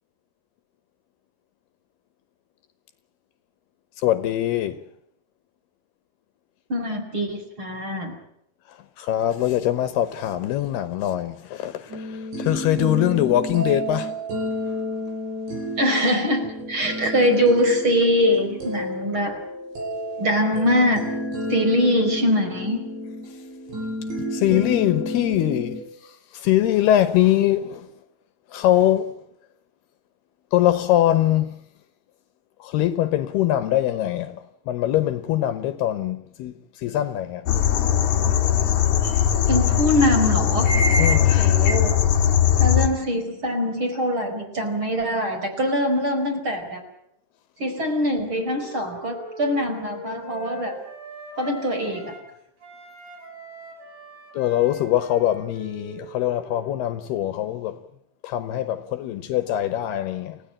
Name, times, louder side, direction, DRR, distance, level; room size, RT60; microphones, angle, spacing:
voice 1, 4.0-4.8 8.7-14.2 24.2-27.9 28.5-29.2 30.5-31.6 32.6-37.5 41.0-41.4 54.3-57.8 58.2-60.4, left 13 dB, 75° left, 3.0 m, -23 dB
voice 2, 6.7-8.2 15.8-19.4 20.2-21.1 21.5-22.8 39.5-40.7 41.4-42.0 42.6-46.8 47.6-50.8 51.4-52.1, equal, 30° right, 5.3 m, -23 dB
sound 1, 11.9-25.8, equal, 90° right, 9.2 m, -31 dB
sound 2, 37.5-42.9, left 9 dB, 50° left, 2.7 m, -19 dB
Wind instrument woodwind instrument, 47.9-52.3 52.6-57.1, right 1 dB, 45° right, 9.1 m, -41 dB
29.5 x 16.5 x 8.8 m
omnidirectional pair, 5.0 m